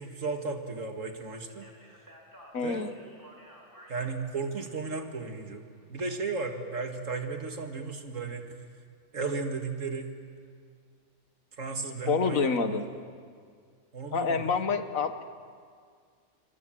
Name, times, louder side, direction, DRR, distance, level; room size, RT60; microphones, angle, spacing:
voice 1, 0.0-1.7 2.6-2.9 3.9-5.6 5.9-8.6 9.1-10.1 11.6-12.8 13.9-14.5, right 4 dB, 70° right, 5 dB, 2.3 m, -34 dB
Speech, 1.5-6.0, equal, 15° right, 4.1 m, -54 dB
voice 2, 2.5-2.9 12.1-12.9 14.1-15.2, left 5 dB, 85° left, 9 dB, 1.7 m, -27 dB
27.5 x 24.5 x 7.6 m, 2.1 s
omnidirectional pair, 1.4 m